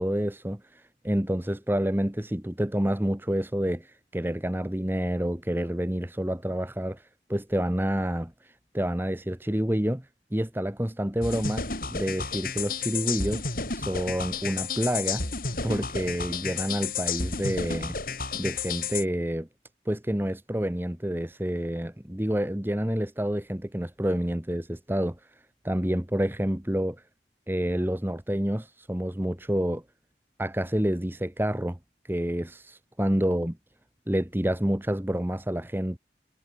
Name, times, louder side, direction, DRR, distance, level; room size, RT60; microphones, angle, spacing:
voice 1, 0.0-10.1 10.3-13.4 13.7-15.2 15.6-18.0 18.3-19.5 19.9-25.2 25.6-27.0 27.5-29.8 30.4-31.8 32.1-33.6 34.1-36.0, equal, 10° right, 1.1 m, -28 dB
sound 1, 11.2-19.0, left 5 dB, 50° left, 5.8 m, -32 dB
head